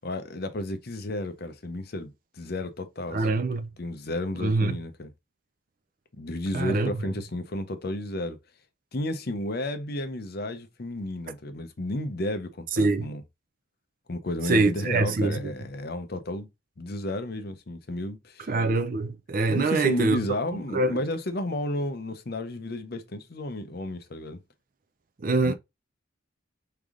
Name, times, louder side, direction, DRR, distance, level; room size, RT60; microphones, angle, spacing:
voice 1, 0.0-3.4 3.8-5.1 6.2-8.4 8.9-13.2 14.1-16.5 16.8-18.5 19.5-24.4 25.4-25.5, left 1 dB, 50° left, 0.6 m, -32 dB
voice 2, 3.1-3.7 4.4-4.8 6.5-7.0 12.8-13.1 14.5-15.5 18.5-20.2 20.7-21.0 25.2-25.5, right 3 dB, 40° right, 0.4 m, -24 dB
3.6 x 3.4 x 3.6 m
head